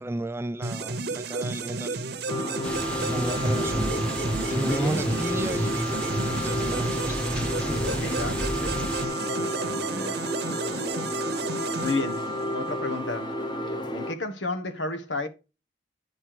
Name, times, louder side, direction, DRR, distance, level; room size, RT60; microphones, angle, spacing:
voice 1, 0.0-2.1 3.0-4.0 4.5-7.2, right 1 dB, 15° right, 0.3 m, -33 dB
sound 1, 0.6-12.7, right 3 dB, 60° right, 0.9 m, -32 dB
sound 2, 2.3-14.2, equal, 25° left, 1.2 m, -31 dB
sound 3, 2.6-9.1, equal, 5° left, 1.1 m, -32 dB
voice 2, 4.6-5.0 7.8-8.9 9.2-10.2 11.8-13.3 13.9-15.3, left 3 dB, 85° left, 1.4 m, -32 dB
9.7 x 4.3 x 4.9 m
head